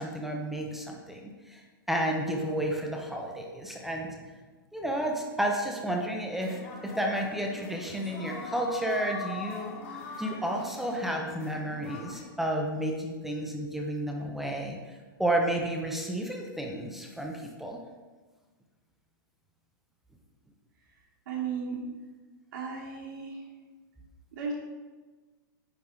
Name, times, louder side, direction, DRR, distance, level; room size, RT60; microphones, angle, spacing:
voice 1, 0.0-1.6 1.9-4.2 4.7-14.9 15.2-17.8, right 1 dB, ahead, 0 dB, 0.3 m, -31 dB
sound 1, 6.3-12.2, left 4 dB, 35° left, 1.1 m, -42 dB
voice 2, 21.3-21.8 22.5-23.4 24.3-24.5, right 6 dB, 60° right, -4 dB, 1.2 m, -35 dB
9.3 x 3.5 x 3.6 m, 1.3 s
supercardioid pair, 170°, 12 cm